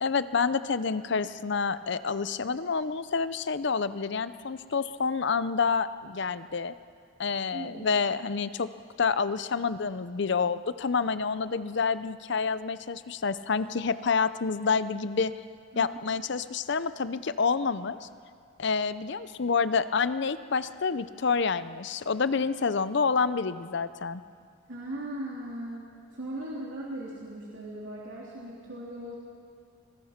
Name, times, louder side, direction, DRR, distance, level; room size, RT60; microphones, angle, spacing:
voice 1, 0.0-6.7 7.2-8.7 9.0-15.3 15.8-18.1 18.6-24.2, left 5 dB, 60° left, 14 dB, 0.6 m, -28 dB
voice 2, 7.5-7.9 15.7-15.9 24.7-25.9 26.1-29.1, right 1 dB, 70° right, -5 dB, 3.2 m, -38 dB
26.0 x 20.0 x 5.9 m, 2.3 s
head